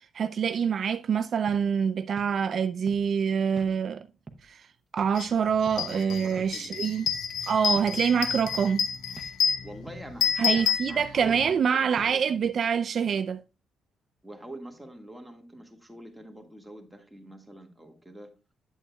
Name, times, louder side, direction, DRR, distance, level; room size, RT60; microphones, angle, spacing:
voice 1, 0.0-4.0 4.5-4.6 4.9-7.1 7.5-8.9 10.4-13.4, right 7 dB, 55° right, 0.3 m, -26 dB
sound 1, 1.5-1.7 2.2-2.3 2.9-3.0 3.6-3.7 4.3-4.5 5.0-5.1 5.7-5.8 6.4-6.6 7.1-7.2 7.8-7.9 8.5-8.6 9.2-9.4 9.9-10.1 10.6-10.7 11.3-11.5 12.0-12.2, right 3 dB, 25° right, 0.8 m, -46 dB
sound 2, 5.2-5.3 5.6-11.5, left 6 dB, 75° left, 0.8 m, -29 dB
voice 2, 5.9-6.9 9.6-12.3 14.2-18.3, right 1 dB, 5° right, 1.6 m, -45 dB
8.3 x 8.2 x 2.2 m
cardioid pair, 90°, 0 cm